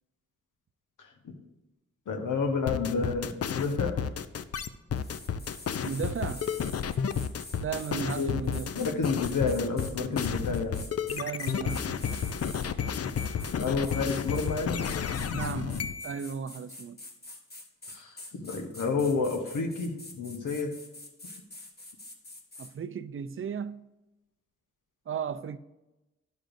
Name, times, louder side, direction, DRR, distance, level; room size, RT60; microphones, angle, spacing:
voice 1, 2.1-3.9 8.1-8.3 8.7-10.8 13.5-14.8 17.9-20.7, left 4 dB, 80° left, 1.0 m, -30 dB
sound 1, 2.7-16.2, left 7 dB, 55° left, 0.5 m, -31 dB
sound 2, 5.0-12.7 13.2-14.5 14.8-22.7, left 2 dB, 30° left, 1.3 m, -46 dB
voice 2, 5.8-6.4 7.6-9.0 11.1-12.3 15.3-17.0 22.6-23.8 25.1-25.6, right 7 dB, 45° right, 0.5 m, -35 dB
10.5 x 6.4 x 2.6 m
cardioid pair, 45°, 31 cm